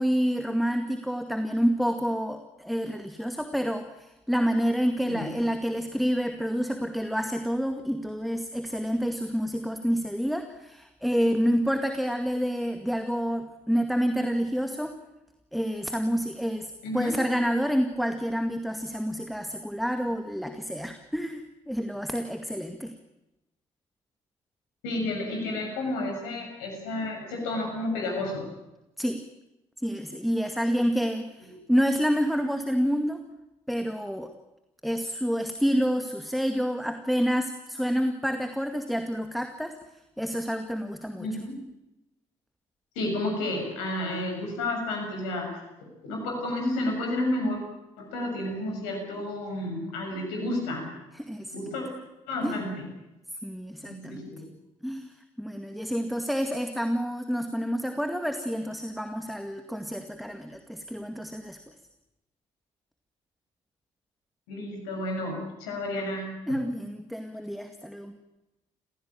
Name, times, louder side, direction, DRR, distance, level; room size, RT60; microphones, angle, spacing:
voice 1, 0.0-14.9 15.5-23.0 29.0-29.2 29.8-33.2 33.7-34.3 34.8-39.7 40.2-41.3 51.1-51.5 52.4-52.6 53.4-54.2 54.8-61.6 66.5-68.2, equal, ahead, 6 dB, 2.1 m, -28 dB
voice 2, 16.8-17.2 24.8-28.4 41.2-41.5 42.9-45.5 45.8-47.6 48.0-50.9 51.5-51.8 52.3-52.9 53.9-54.4 64.5-66.6, left 1 dB, 75° left, 2 dB, 6.9 m, -31 dB
28.0 x 16.5 x 9.0 m, 0.96 s
figure-of-eight pair, 45°, 17 cm